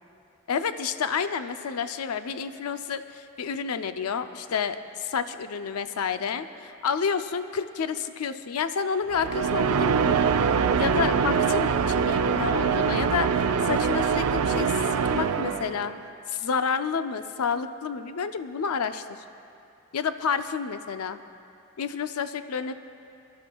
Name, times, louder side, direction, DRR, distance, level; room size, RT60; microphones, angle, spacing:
voice 1, 0.5-10.1 10.8-15.9 16.3-19.2 19.9-21.2 21.8-22.7, left 6 dB, 90° left, 10 dB, 0.5 m, -30 dB
sound 1, 9.1-16.0, right 6 dB, 85° right, 0.4 m, -24 dB
24.5 x 11.5 x 2.3 m, 2.6 s
head